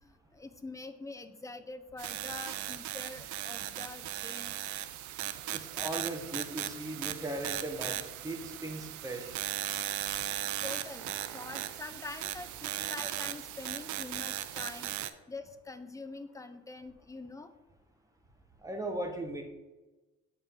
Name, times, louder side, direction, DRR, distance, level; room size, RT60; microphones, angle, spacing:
voice 1, 0.0-4.6 10.6-17.5, left 3 dB, 10° left, 9 dB, 0.5 m, -45 dB
sound 1, 2.0-15.1, right 13 dB, 70° right, 0.5 m, -37 dB
voice 2, 5.5-9.4 18.6-19.4, right 1 dB, 10° right, 3 dB, 1.1 m, -38 dB
7.4 x 4.5 x 3.7 m, 1.1 s
cardioid pair, 90°, 30 cm